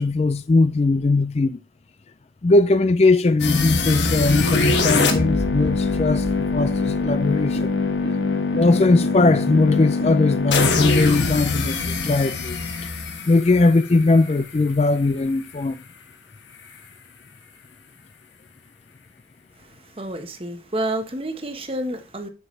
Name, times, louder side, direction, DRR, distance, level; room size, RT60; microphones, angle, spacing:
voice 1, 0.0-1.6 2.4-7.8 8.6-12.6 13.3-15.8, left 3 dB, 35° left, 0.4 m, -19 dB
sound 1, 3.4-14.4, left 3 dB, 90° left, 1.6 m, -23 dB
voice 2, 19.6-22.3, right 1 dB, 30° right, 1.1 m, -29 dB
8.0 x 7.0 x 3.2 m
head